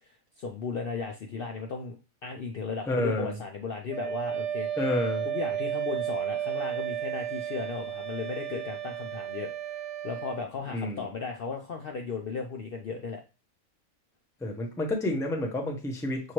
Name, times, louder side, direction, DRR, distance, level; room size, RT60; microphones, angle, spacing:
voice 1, 0.0-2.0 2.2-4.7 5.2-13.2, left 5 dB, 60° left, 3 dB, 0.6 m, -36 dB
voice 2, 2.9-3.3 4.8-5.2 10.7-11.1 14.4-16.3, left 2 dB, 5° left, 2 dB, 0.4 m, -29 dB
Wind instrument woodwind instrument, 3.9-10.4, right 10 dB, 70° right, 1.1 m, -33 dB
6.1 x 2.8 x 3.0 m, 0.30 s
omnidirectional pair, 1.4 m